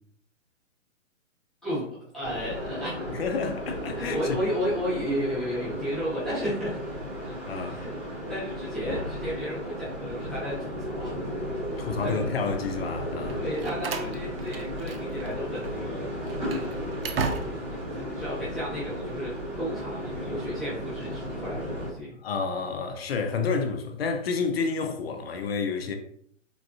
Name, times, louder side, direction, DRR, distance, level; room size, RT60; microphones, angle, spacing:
voice 1, 2.1-3.1 3.9-6.8 7.2-7.9 8.3-11.1 11.7-12.3 13.2-16.3 17.1-22.1, equal, ahead, 1.1 m, -33 dB
sound 1, 2.2-21.9, equal, 15° right, 1.0 m, -34 dB
voice 2, 3.1-4.4 7.5-7.8 11.8-13.4 22.2-26.0, left 5 dB, 50° left, 0.5 m, -29 dB
Slam, 13.3-15.3 15.6-15.7 16.2-17.8, right 4 dB, 50° right, 0.4 m, -34 dB
4.0 x 2.4 x 2.3 m
figure-of-eight pair, 130°, 38 cm